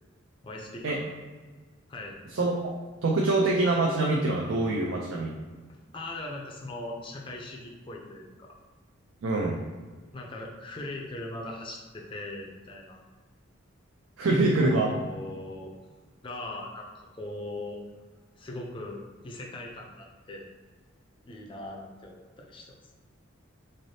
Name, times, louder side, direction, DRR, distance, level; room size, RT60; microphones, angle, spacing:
voice 1, 0.4-1.0 1.9-2.2 5.7-8.6 10.1-13.0 14.6-15.7 16.2-17.8 18.4-20.4 21.2-22.8, left 2 dB, 25° left, 0 dB, 0.4 m, -40 dB
voice 2, 2.3-2.7 3.0-5.3 9.2-9.6 14.2-14.9, right 2 dB, 70° right, -2 dB, 0.5 m, -25 dB
3.9 x 3.3 x 2.7 m, 1.4 s
head